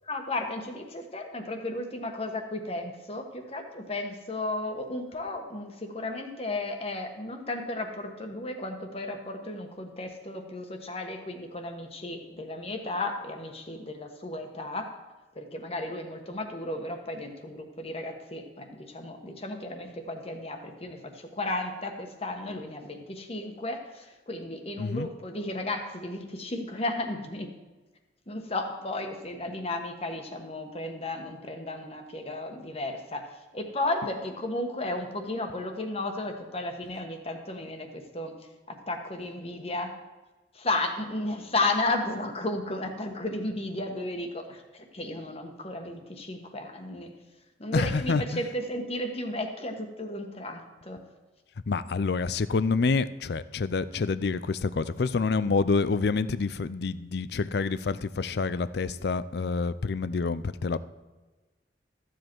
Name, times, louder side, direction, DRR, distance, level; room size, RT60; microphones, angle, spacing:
voice 1, 0.0-14.9 15.3-27.5 28.3-38.3 38.7-39.9 40.5-47.1 47.6-51.0, left 2 dB, 35° left, 4 dB, 1.3 m, -34 dB
voice 2, 24.8-25.1 47.7-48.4 51.7-60.8, left 4 dB, 65° left, 15 dB, 0.5 m, -27 dB
13.5 x 7.6 x 4.6 m, 1.2 s
head